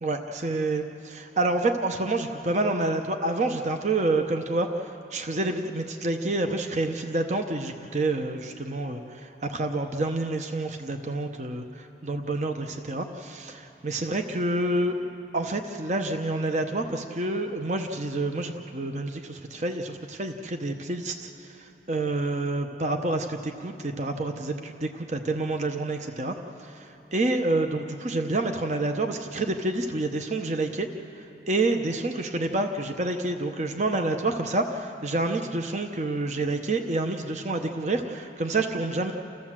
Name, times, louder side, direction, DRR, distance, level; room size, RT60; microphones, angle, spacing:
voice 1, 0.0-14.9 15.3-30.9 31.2-39.1, right 2 dB, 40° right, 5 dB, 0.8 m, -28 dB
29.5 x 14.0 x 7.4 m, 2.9 s
head